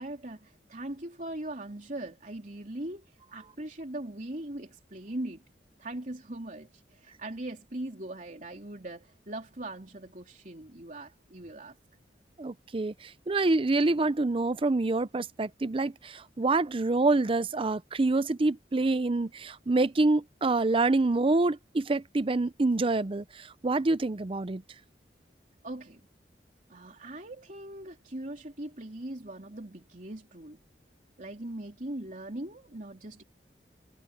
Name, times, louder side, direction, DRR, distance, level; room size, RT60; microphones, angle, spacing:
voice 1, 0.0-5.4 5.8-11.8 25.6-26.0 26.7-30.6 31.2-33.2, right 1 dB, 45° right, 3.4 m, -40 dB
voice 2, 12.4-24.6, right 2 dB, 30° right, 0.5 m, -26 dB
head